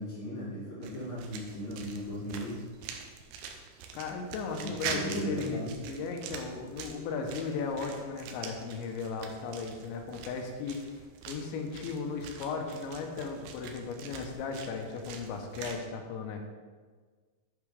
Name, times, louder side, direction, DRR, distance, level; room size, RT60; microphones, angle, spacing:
voice 1, 0.0-2.6 4.6-5.7, equal, 50° left, -10 dB, 3.9 m, -37 dB
sound 1, 0.8-15.8, right 6 dB, 80° right, 2.6 m, -44 dB
voice 2, 3.9-10.9 11.3-16.5, left 4 dB, 85° left, 3 dB, 3.2 m, -36 dB
8.4 x 7.8 x 3.4 m, 1.5 s
omnidirectional pair, 5.2 m